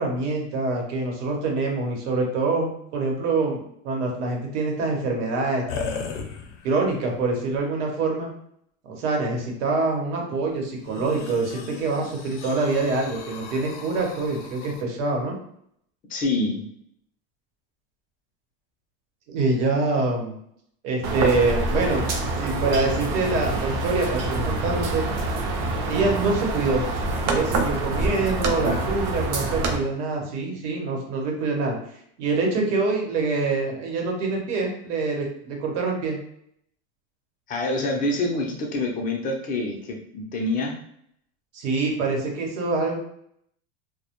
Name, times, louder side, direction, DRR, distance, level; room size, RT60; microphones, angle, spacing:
voice 1, 0.0-6.1 6.6-8.3 8.8-15.3 19.3-20.4 20.8-22.1 22.4-25.0 25.8-26.8 27.2-31.8 32.2-36.2 41.5-42.9, right 3 dB, 85° right, 1 dB, 0.9 m, -25 dB
sound 1, 5.7-6.9 7.6-7.7 10.8-14.8, left 5 dB, 85° left, 0.5 m, -37 dB
voice 2, 16.1-16.6 28.6-29.0 37.5-40.8, left 2 dB, 25° left, 1 dB, 0.4 m, -26 dB
sound 2, 21.0-29.8, right 2 dB, 50° right, 0.5 m, -26 dB
2.1 x 2.1 x 2.8 m, 0.70 s
supercardioid pair, 135°, 35 cm